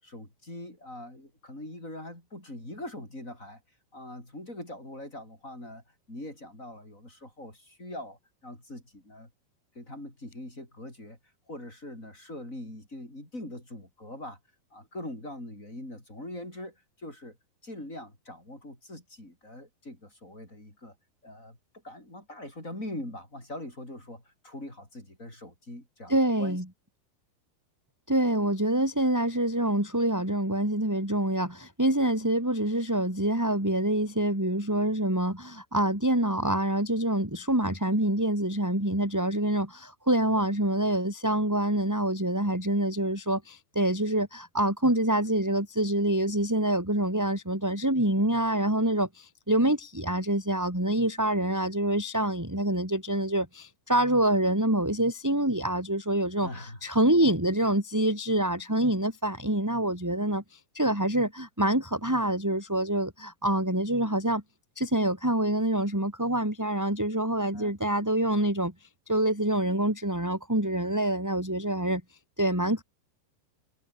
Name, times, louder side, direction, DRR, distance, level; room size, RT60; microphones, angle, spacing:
voice 1, 0.0-3.6 3.9-5.8 6.1-9.3 9.7-11.2 11.5-14.4 14.7-17.4 17.6-20.9 21.2-21.6 21.8-26.1 26.4-26.6 40.4-40.5 56.4-56.8 67.5-67.8, left 1 dB, 15° left, 7.6 m, -42 dB
voice 2, 26.1-26.6 28.1-64.4 64.7-72.0 72.4-72.8, right 1 dB, 5° right, 4.6 m, -26 dB
omnidirectional pair, 5.3 m